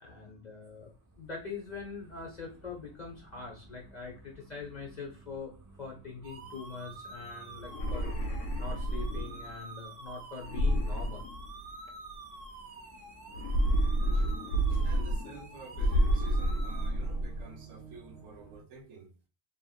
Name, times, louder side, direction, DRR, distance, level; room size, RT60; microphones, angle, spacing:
voice 1, 0.0-5.5 5.8-8.1 8.5-11.2, left 4 dB, 45° left, -1 dB, 0.6 m, -43 dB
sound 1, 0.6-18.6, right 3 dB, 20° right, 0.4 m, -56 dB
sound 2, 6.2-16.9, right 2 dB, 55° right, 1.0 m, -48 dB
sound 3, 7.6-9.5 10.4-11.9 13.3-15.4 15.7-17.4, right 1 dB, 85° left, 1.0 m, -29 dB
voice 2, 14.0-14.4 14.7-19.1, right 4 dB, 80° right, 4 dB, 1.1 m, -49 dB
2.8 x 2.7 x 2.3 m, 0.35 s
omnidirectional pair, 1.3 m